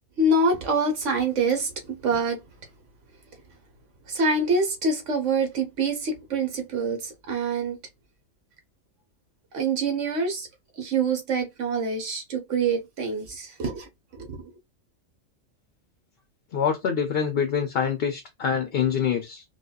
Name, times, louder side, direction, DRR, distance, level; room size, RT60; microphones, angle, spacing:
voice 1, 0.2-2.4 4.1-7.8 9.5-10.5 10.8-14.3, right 3 dB, 70° right, 1.4 m, -25 dB
voice 2, 16.5-19.4, left 7 dB, 55° left, 0.7 m, -25 dB
4.7 x 2.3 x 2.3 m
omnidirectional pair, 1.4 m